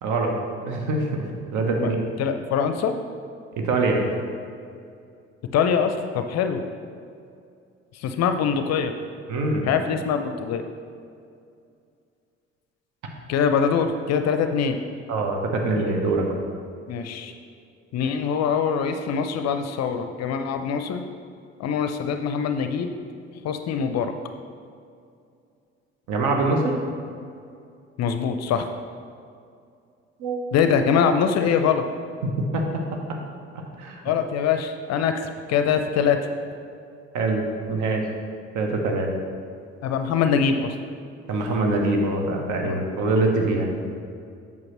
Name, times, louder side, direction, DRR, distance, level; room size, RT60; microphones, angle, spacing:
voice 1, 0.0-0.3 0.6-2.0 3.5-4.1 9.3-9.7 15.1-16.3 26.1-26.8 30.2-30.4 32.2-32.8 33.8-34.0 37.1-38.0 38.5-39.1 41.3-43.8, right 2 dB, 55° right, 2 dB, 1.1 m, -24 dB
voice 2, 2.2-3.0 5.5-6.6 7.9-8.9 9.6-10.6 13.3-14.8 16.9-17.3 17.9-21.0 21.6-22.9 23.4-24.1 28.0-28.7 30.5-31.8 34.0-36.2 39.8-40.8 42.6-42.8, left 7 dB, 50° left, 7 dB, 0.5 m, -23 dB
7.7 x 5.3 x 3.1 m, 2.4 s
figure-of-eight pair, 50°, 35 cm